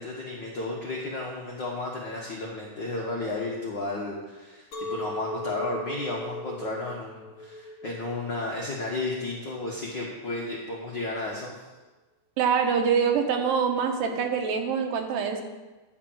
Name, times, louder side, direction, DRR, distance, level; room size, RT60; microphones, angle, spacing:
voice 1, 0.0-11.5, left 2 dB, 65° left, -2 dB, 1.0 m, -33 dB
Chink clink, 4.7-9.9, equal, 45° left, 2.3 m, -38 dB
voice 2, 12.4-15.4, right 6 dB, 80° right, 4 dB, 2.7 m, -25 dB
11.0 x 5.1 x 7.3 m, 1.2 s
omnidirectional pair, 4.0 m